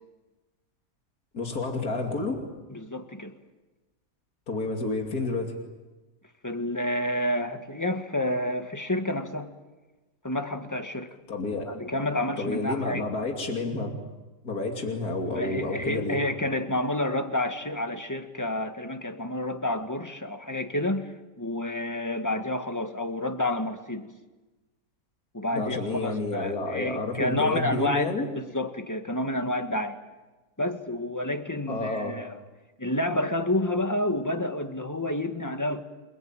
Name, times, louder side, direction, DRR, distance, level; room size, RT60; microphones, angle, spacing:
voice 1, 1.3-2.4 4.5-5.5 11.3-11.7 12.4-13.9 14.4-16.2 25.5-28.3 31.7-32.1, left 3 dB, 60° left, 2 dB, 3.3 m, -30 dB
voice 2, 2.7-3.3 6.4-9.5 10.2-11.1 11.6-13.1 15.3-24.1 25.3-30.0 30.6-32.4 32.8-35.8, left 1 dB, 10° left, 7 dB, 1.6 m, -29 dB
29.0 x 20.5 x 9.0 m, 1.1 s
omnidirectional pair, 1.8 m